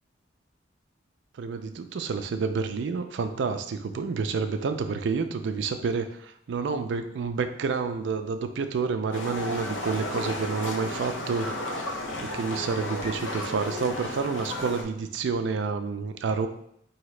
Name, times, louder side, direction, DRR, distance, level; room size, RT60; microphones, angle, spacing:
voice 1, 1.4-11.5 12.2-16.5, right 5 dB, 70° right, 8 dB, 0.4 m, -29 dB
Livestock farm animals working animals, 9.1-14.8, left 1 dB, 90° left, 0.6 m, -33 dB
4.9 x 2.7 x 3.1 m, 0.72 s
head